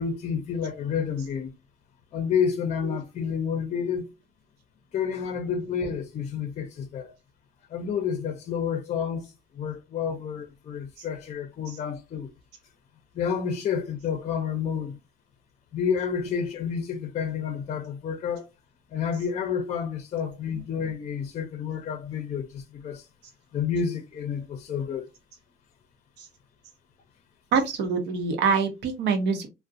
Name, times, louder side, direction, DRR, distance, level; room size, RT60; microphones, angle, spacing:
voice 1, 0.0-1.5 2.1-4.1 4.9-7.1 7.7-12.3 13.1-15.0 15.7-18.5 18.9-23.0 23.5-25.1, left 7 dB, 40° left, 0.5 m, -29 dB
voice 2, 27.5-29.5, right 5 dB, 85° right, 0.8 m, -25 dB
2.4 x 2.1 x 2.6 m
cardioid pair, 110°, 17 cm